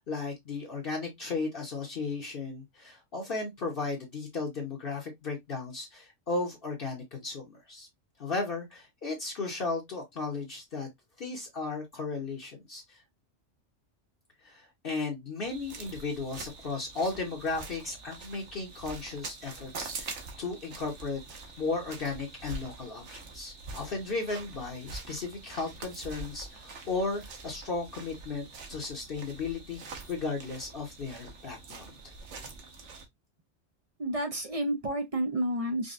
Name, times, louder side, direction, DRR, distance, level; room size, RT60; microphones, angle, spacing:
voice 1, 0.0-7.9 8.2-10.9 11.2-13.0 14.4-21.2 21.6-29.8 30.1-32.1, left 3 dB, 55° left, 1.1 m, -35 dB
sound 1, 15.4-33.1, right 4 dB, 85° right, 1.2 m, -45 dB
voice 2, 34.0-35.9, right 1 dB, 40° right, 0.5 m, -30 dB
5.1 x 2.2 x 2.5 m
omnidirectional pair, 1.2 m